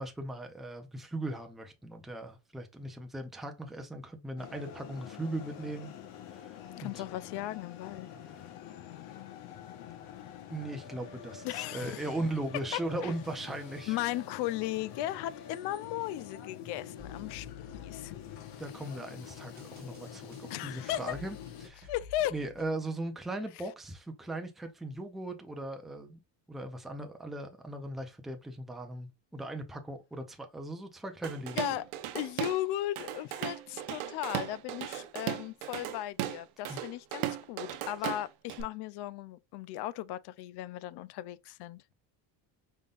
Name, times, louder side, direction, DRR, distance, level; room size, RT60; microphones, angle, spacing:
voice 1, 0.0-5.9 6.3-7.0 10.5-14.0 18.6-21.9 22.3-26.2 26.5-31.6 36.7-36.8, right 1 dB, ahead, 0.4 m, -38 dB
sound 1, 4.4-21.7, left 9 dB, 75° left, 1.3 m, -47 dB
voice 2, 6.8-8.1 11.4-12.1 12.7-13.1 13.9-18.2 20.5-21.2 21.9-22.4 31.6-31.9 32.1-41.8, left 14 dB, 55° left, 0.5 m, -36 dB
sound 2, 17.0-18.8 19.6-22.7, left 6 dB, 20° right, 1.2 m, -51 dB
Drum kit / Drum, 31.2-32.6 33.0-38.6, right 13 dB, 85° right, 0.9 m, -37 dB
5.3 x 3.7 x 2.4 m
cardioid pair, 155°, 49 cm